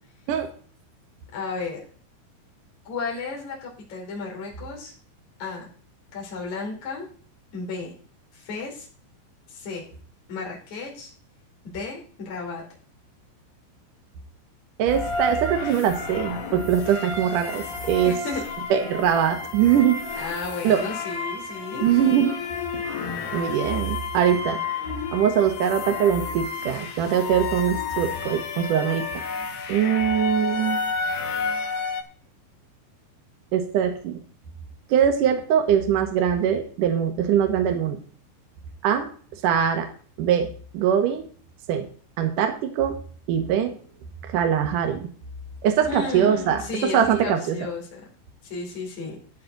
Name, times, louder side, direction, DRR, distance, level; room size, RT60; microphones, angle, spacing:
voice 1, 1.3-1.8 2.9-4.9 5.4-5.7 6.1-7.1 7.5-7.9 8.3-8.9 9.5-9.9 10.3-11.1 11.6-12.6 18.0-18.4 20.1-21.9 45.9-48.0 48.4-49.2, left 4 dB, 40° left, -2 dB, 5.3 m, -33 dB
voice 2, 14.8-18.1 18.7-20.0 20.6-20.8 21.8-22.4 22.7-22.8 23.3-24.6 25.1-29.0 29.7-30.8 33.5-34.2 34.9-38.0 38.8-39.1 39.4-39.9 40.2-40.5 40.7-41.3 41.7-41.9 42.2-42.9 43.3-43.7 44.3-45.1 45.6-46.6 46.9-47.6, right 9 dB, 70° right, 5 dB, 2.1 m, -22 dB
sound 1, 14.9-32.0, left 4 dB, 60° left, 3.7 m, -31 dB
13.0 x 10.5 x 4.0 m, 0.43 s
omnidirectional pair, 5.6 m